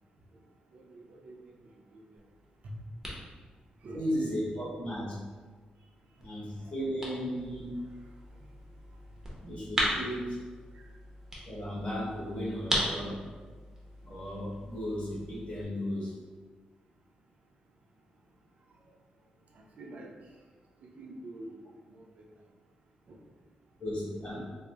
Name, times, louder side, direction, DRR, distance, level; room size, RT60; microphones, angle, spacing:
voice 1, 0.7-1.3 1.9-2.0 2.6-2.7 3.8-4.1 6.5-6.8 10.7-10.8 19.5-20.1 20.8-22.3 23.1-23.2, right 1 dB, 60° right, -1 dB, 0.5 m, -47 dB
sound 1, 2.2-15.6, equal, 15° right, 0.8 m, -39 dB
voice 2, 3.9-5.1 6.2-7.8 9.4-10.4 11.5-13.2 14.0-16.1 23.8-24.5, equal, 45° left, -7 dB, 1.4 m, -35 dB
3.8 x 2.0 x 3.4 m, 1.4 s
wide cardioid pair, 125°, 3 cm